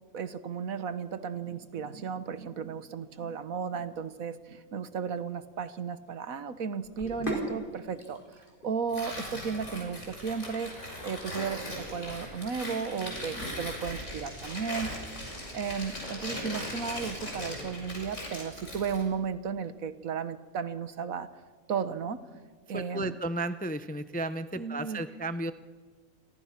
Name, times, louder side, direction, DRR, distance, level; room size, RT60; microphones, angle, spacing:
voice 1, 0.1-8.2 8.6-14.9 15.5-21.3 21.7-22.2 22.7-23.2 24.6-25.0, right 6 dB, 75° right, 12 dB, 1.6 m, -34 dB
Sink (filling or washing), 6.8-17.7, equal, 35° left, 5.0 m, -44 dB
Tearing, 8.9-19.1, equal, 55° left, 6.2 m, -39 dB
voice 2, 22.7-25.5, right 2 dB, 10° left, 11 dB, 0.5 m, -33 dB
29.5 x 23.0 x 5.9 m, 1.4 s
omnidirectional pair, 1.5 m